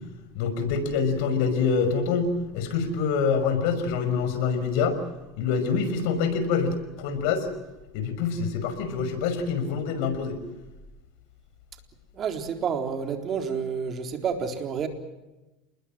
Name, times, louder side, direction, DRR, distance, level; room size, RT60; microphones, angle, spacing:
voice 1, 0.4-5.0 5.4-7.5 7.9-10.3, left 5 dB, 70° left, 9 dB, 5.8 m, -26 dB
voice 2, 12.2-14.9, right 6 dB, 35° right, 5 dB, 3.9 m, -29 dB
28.5 x 21.0 x 7.4 m, 1.1 s
supercardioid pair, 125°, 0 cm